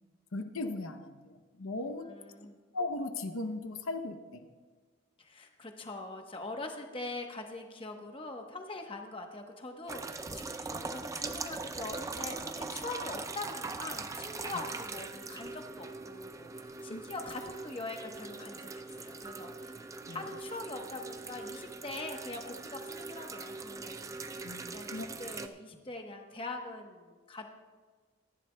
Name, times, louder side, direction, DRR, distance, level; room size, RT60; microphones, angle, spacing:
voice 1, 0.3-2.1 2.7-4.4 16.9-17.0 20.1-20.2 24.4-25.1, left 2 dB, 85° left, 8 dB, 0.7 m, -37 dB
voice 2, 2.1-2.6 5.2-24.0 24.7-27.5, left 2 dB, 25° left, 3 dB, 1.0 m, -43 dB
sound 1, 9.9-25.5, right 3 dB, 15° right, 0.3 m, -41 dB
24.5 x 11.0 x 2.2 m, 1.4 s
head